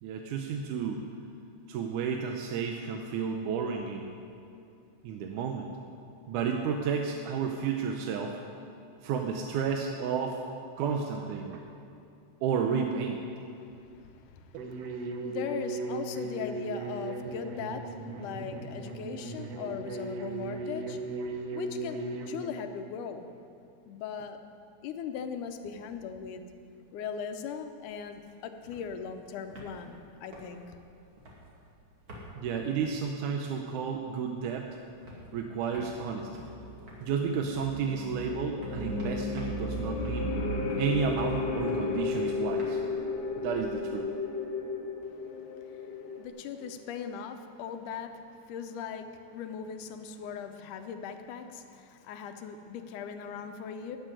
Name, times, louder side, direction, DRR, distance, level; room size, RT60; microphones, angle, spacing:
voice 1, 0.0-1.1 1.7-4.1 5.0-5.7 6.3-8.4 9.0-10.4 10.8-11.7 12.4-13.3 32.3-34.7 35.3-36.5 37.0-40.3 40.8-42.8 43.4-44.1, right 6 dB, 80° right, 3 dB, 2.2 m, -32 dB
voice 2, 13.7-21.1 21.5-23.3 23.9-24.4 24.8-26.4 26.9-30.8 45.2-54.0, left 7 dB, 80° left, 7 dB, 2.3 m, -39 dB
odd bamboo mouth loop, 14.5-22.5, right 3 dB, 65° right, 1.8 m, -37 dB
sound 1, 25.1-25.8 26.1-26.2 26.4-33.9 34.1-43.9, equal, 40° right, 3.2 m, -51 dB
sound 2, 36.1-46.3, left 3 dB, 50° left, 1.4 m, -34 dB
13.5 x 7.6 x 9.7 m, 2.6 s
omnidirectional pair, 3.6 m